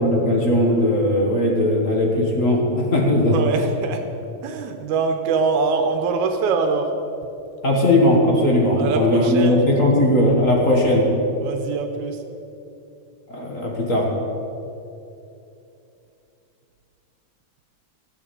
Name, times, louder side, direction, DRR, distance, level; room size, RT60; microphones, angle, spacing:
voice 1, 0.0-3.4 7.6-11.1 13.3-14.1, left 1 dB, 35° left, -1 dB, 1.4 m, -18 dB
voice 2, 3.3-4.1 4.4-6.9 8.8-9.6 11.4-12.2, right 4 dB, 85° right, 5 dB, 2.3 m, -23 dB
15.0 x 7.9 x 6.9 m, 2.8 s
omnidirectional pair, 3.4 m